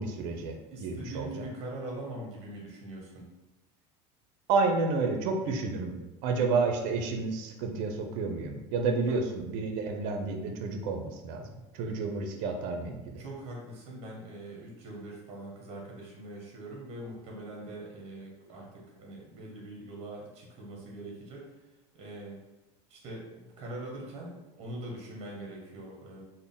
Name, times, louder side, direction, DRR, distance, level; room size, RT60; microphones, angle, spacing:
voice 1, 0.0-1.5 4.5-6.0 6.2-13.2, right 4 dB, 70° right, 4 dB, 0.6 m, -30 dB
voice 2, 0.7-3.3 9.1-9.2 13.2-21.5 21.9-22.4 22.9-26.2, right 1 dB, 45° right, -1 dB, 1.1 m, -42 dB
3.5 x 2.1 x 3.9 m, 1.0 s
supercardioid pair, 120°, 14 cm